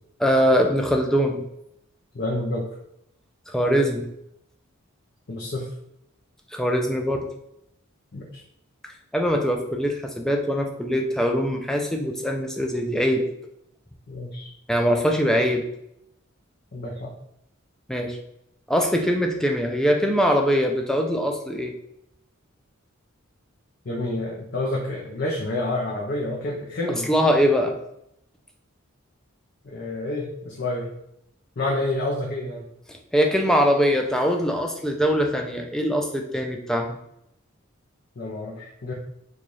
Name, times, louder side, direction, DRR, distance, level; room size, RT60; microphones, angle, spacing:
voice 1, 0.2-1.4 3.5-4.1 6.5-7.2 8.8-13.2 14.7-15.6 17.9-18.2 18.7-21.7 27.0-27.7 33.1-37.0, equal, ahead, 2 dB, 0.3 m, -22 dB
voice 2, 2.1-2.7 5.3-5.7 8.1-8.2 14.1-14.5 16.7-17.1 23.9-27.1 29.6-30.9 31.6-32.7 38.2-38.9, left 2 dB, 50° left, -3 dB, 0.5 m, -28 dB
3.1 x 2.3 x 3.9 m, 0.78 s
head